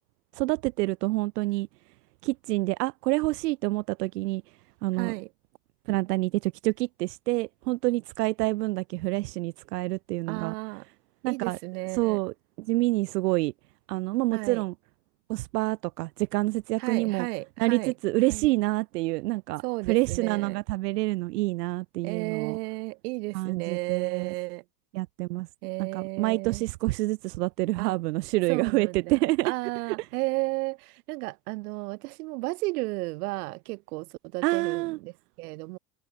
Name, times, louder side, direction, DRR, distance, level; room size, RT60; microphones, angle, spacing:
voice 1, 0.3-1.7 2.2-4.4 4.8-5.1 5.9-10.5 11.2-11.6 11.9-13.5 13.9-14.7 15.3-17.3 17.6-22.6 23.3-24.3 24.9-25.5 25.8-29.5 29.9-30.1 34.4-35.0, right 20 dB, 85° right, 1.8 m, -27 dB
voice 2, 5.0-5.3 10.3-10.9 11.3-12.2 14.3-14.6 16.8-17.9 18.3-18.5 19.6-20.6 22.0-24.6 25.6-26.6 27.8-28.0 28.5-29.2 29.4-35.1 35.4-35.8, right 24 dB, 70° right, 3.0 m, -33 dB
supercardioid pair, 160°, 46 cm